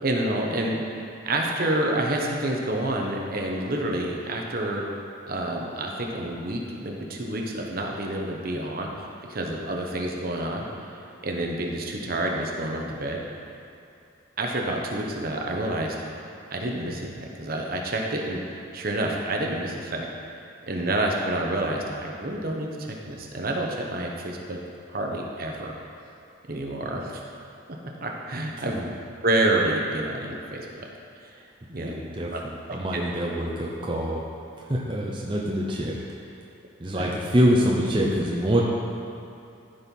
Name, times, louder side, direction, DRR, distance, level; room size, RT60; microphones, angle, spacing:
voice 1, 0.0-4.8 5.3-8.9 9.3-10.7 11.2-13.2 14.4-16.0 16.5-18.4 18.7-20.1 20.6-24.6 24.9-25.8 26.5-27.2 28.0-28.9 29.2-30.9 31.2-31.3 31.7-31.9 32.3-32.4 32.9-33.0 36.9-37.1, right 1 dB, 50° right, 0 dB, 1.1 m, -28 dB
voice 2, 31.8-34.2 34.6-36.0 36.8-38.6, equal, 25° right, -3 dB, 0.8 m, -25 dB
14.0 x 4.7 x 5.4 m, 2.7 s
head